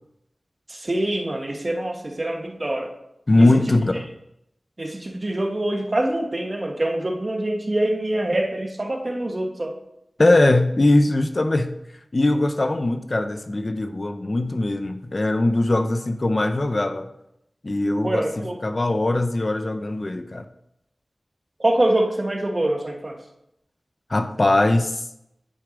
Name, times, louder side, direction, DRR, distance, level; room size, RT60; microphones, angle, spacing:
voice 1, 0.7-2.9 3.4-3.5 4.8-9.7 18.0-18.6 21.6-23.2, right 1 dB, 40° right, 2 dB, 1.3 m, -24 dB
voice 2, 3.3-4.1 10.2-11.7 12.1-17.1 17.6-18.3 18.6-20.4 24.1-25.0, left 2 dB, 45° left, 8 dB, 0.6 m, -20 dB
10.0 x 4.5 x 5.1 m, 0.81 s
wide cardioid pair, 50°, 0 cm